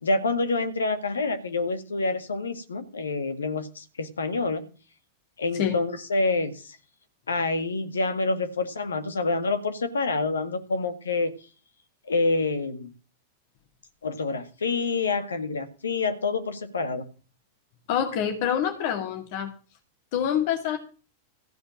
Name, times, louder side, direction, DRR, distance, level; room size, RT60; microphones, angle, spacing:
voice 1, 0.0-4.7 5.4-6.8 7.3-11.3 12.1-12.9 14.0-17.1, left 3 dB, 70° left, 10 dB, 1.8 m, -27 dB
voice 2, 17.9-19.5 20.1-20.8, left 9 dB, 50° left, 5 dB, 2.4 m, -26 dB
15.5 x 5.2 x 8.8 m, 0.36 s
figure-of-eight pair, 90°, 0 cm